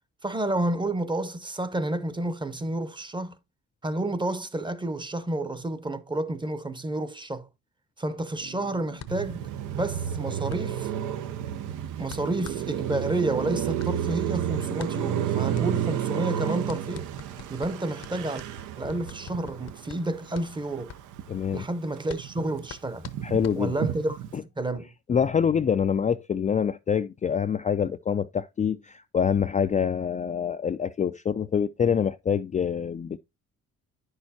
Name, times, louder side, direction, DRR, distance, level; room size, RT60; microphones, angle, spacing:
voice 1, 0.2-3.4 3.8-7.5 8.0-9.4 9.7-10.9 12.0-17.1 17.5-18.4 18.8-20.9 21.5-23.1 23.6-24.2 24.6-24.9, right 1 dB, 15° right, 0.8 m, -30 dB
sound 1, 8.4-12.4, right 4 dB, 65° right, 1.3 m, -53 dB
sound 2, 9.0-24.1, left 9 dB, 60° left, 0.8 m, -47 dB
Car passing by, 9.1-21.5 21.9-24.4, right 10 dB, 85° right, 0.7 m, -31 dB
voice 2, 21.3-21.6 23.2-23.7 24.3-24.4 25.1-33.2, left 7 dB, 25° left, 0.3 m, -25 dB
9.4 x 6.4 x 2.7 m
cardioid pair, 90°, 30 cm